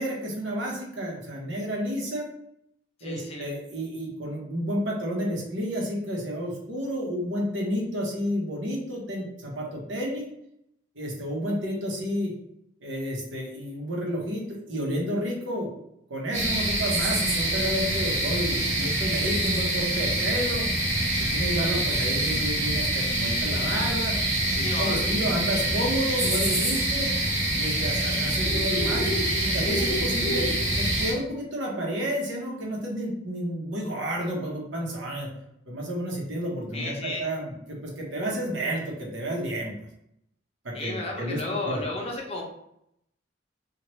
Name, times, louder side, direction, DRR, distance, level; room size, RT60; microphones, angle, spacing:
voice 1, 0.0-2.3 3.0-10.3 10.9-12.3 12.8-15.7 16.1-20.7 21.2-24.2 24.5-27.1 27.6-29.1 29.4-30.5 30.8-35.3 35.7-39.7 40.6-41.4 41.7-41.8, equal, 85° right, -2 dB, 0.9 m, -31 dB
voice 2, 3.0-3.5 24.6-25.0 36.7-37.3 40.7-42.4, left 2 dB, 35° left, -1 dB, 0.6 m, -33 dB
sound 1, 16.3-31.1, right 1 dB, 40° right, 1.3 m, -25 dB
2.9 x 2.4 x 3.0 m, 0.77 s
head